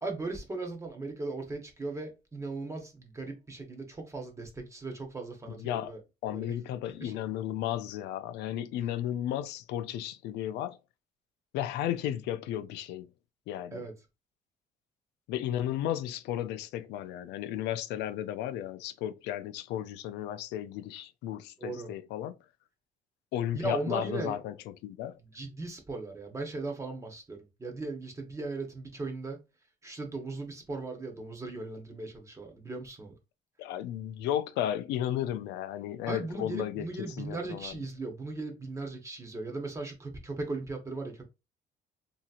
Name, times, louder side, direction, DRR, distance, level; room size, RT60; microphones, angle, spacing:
voice 1, 0.0-6.0 6.3-6.5 7.0-7.2 13.7-13.9 21.6-21.9 23.5-24.4 25.3-29.4 29.8-33.1 36.1-41.2, right 3 dB, 15° right, 0.9 m, -38 dB
voice 2, 5.6-5.9 6.2-10.8 11.5-13.1 13.5-13.9 15.3-22.3 23.3-25.2 33.6-36.9 37.2-37.7, left 11 dB, 85° left, 0.4 m, -34 dB
2.8 x 2.7 x 2.4 m
cardioid pair, 110°, 17 cm